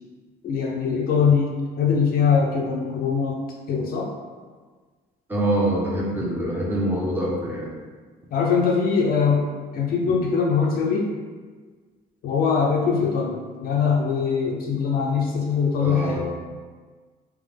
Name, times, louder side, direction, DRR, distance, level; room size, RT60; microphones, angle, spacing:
voice 1, 0.4-1.5 1.8-3.4 3.7-4.1 8.3-9.5 9.7-11.1 12.2-16.2, left 6 dB, 60° left, -1 dB, 0.6 m, -22 dB
voice 2, 5.3-7.7 15.8-16.2, right 1 dB, 10° right, -4 dB, 1.0 m, -25 dB
3.6 x 3.1 x 3.4 m, 1.5 s
cardioid pair, 110°, 17 cm